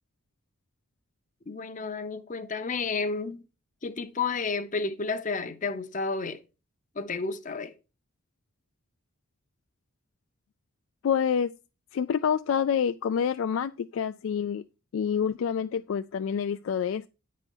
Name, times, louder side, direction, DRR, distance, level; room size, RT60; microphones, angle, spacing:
voice 1, 1.5-3.4 3.8-6.4 7.0-7.7, left 4 dB, 35° left, 0.7 m, -31 dB
voice 2, 11.0-11.5 11.9-14.6 14.9-17.1, left 7 dB, 70° left, 0.3 m, -27 dB
9.9 x 4.2 x 5.3 m
head